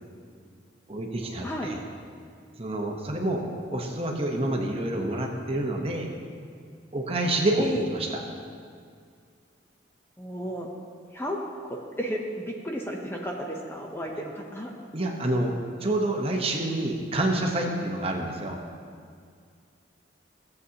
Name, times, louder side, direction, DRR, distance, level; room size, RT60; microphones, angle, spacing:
voice 1, 0.9-1.8 2.6-6.1 6.9-8.2 14.9-15.6 15.8-18.6, right 1 dB, 30° right, 1 dB, 0.8 m, -28 dB
voice 2, 10.2-10.7 11.1-14.7, equal, 10° left, 0 dB, 0.6 m, -33 dB
15.0 x 7.8 x 2.8 m, 2.2 s
head